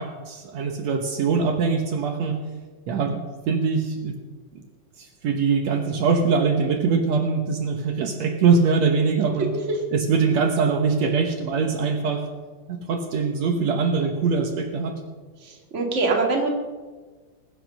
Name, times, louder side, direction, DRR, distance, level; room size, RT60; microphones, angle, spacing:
voice 1, 0.0-2.4 2.9-4.1 5.0-9.5 9.9-12.3 12.7-15.0, right 5 dB, 65° right, 5 dB, 2.3 m, -23 dB
voice 2, 15.4-16.5, right 3 dB, 25° right, 2 dB, 2.1 m, -23 dB
21.0 x 8.2 x 6.5 m, 1.3 s
omnidirectional pair, 3.4 m